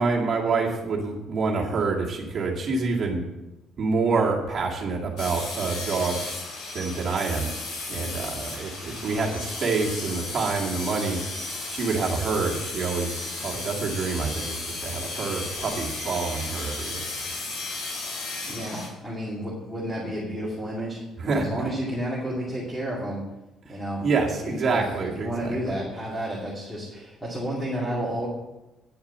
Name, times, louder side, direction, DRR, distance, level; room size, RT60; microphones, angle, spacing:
voice 1, 0.0-3.3 3.8-6.3 6.7-7.5 7.9-11.2 11.7-17.0 21.2-21.5 24.0-25.8, right 4 dB, 35° right, -2 dB, 2.1 m, -27 dB
sound 1, 5.2-18.9, left 3 dB, 60° left, 4.0 m, -34 dB
voice 2, 18.5-23.2 23.7-24.0 24.4-28.3, equal, 5° left, -7 dB, 2.6 m, -31 dB
10.0 x 7.1 x 7.4 m, 1.0 s
cardioid pair, 170°, 0 cm